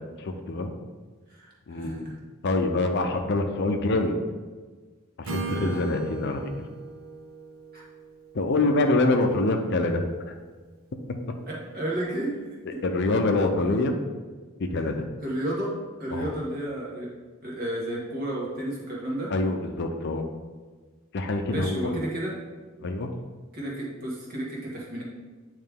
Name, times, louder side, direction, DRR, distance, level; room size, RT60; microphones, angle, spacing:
voice 1, 0.2-0.7 1.7-2.1 2.4-4.2 5.2-6.5 8.3-10.4 12.8-13.9 14.6-15.1 16.1-16.3 19.3-20.2 21.1-22.0 22.8-23.1, left 2 dB, 55° left, 5 dB, 0.5 m, -25 dB
voice 2, 1.3-2.1 5.5-5.7 7.7-7.8 9.2-9.4 11.5-12.3 15.2-15.7 16.0-17.1 17.4-19.3 21.5-22.4 23.5-25.0, right 1 dB, 45° right, -4 dB, 1.6 m, -32 dB
Acoustic guitar / Strum, 5.2-9.2, right 3 dB, 75° right, 0.7 m, -38 dB
8.6 x 3.2 x 3.6 m, 1.4 s
head